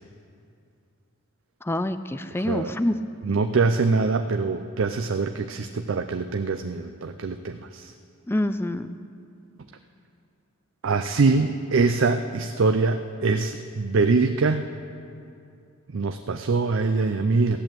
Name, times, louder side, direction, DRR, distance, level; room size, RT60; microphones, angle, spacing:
voice 1, 1.6-3.0 8.3-9.0, left 1 dB, 10° left, 11 dB, 0.4 m, -26 dB
voice 2, 2.4-2.7 3.2-7.9 10.8-14.7 15.9-17.6, right 4 dB, 60° right, 8 dB, 0.5 m, -23 dB
15.0 x 10.5 x 7.6 m, 2.5 s
head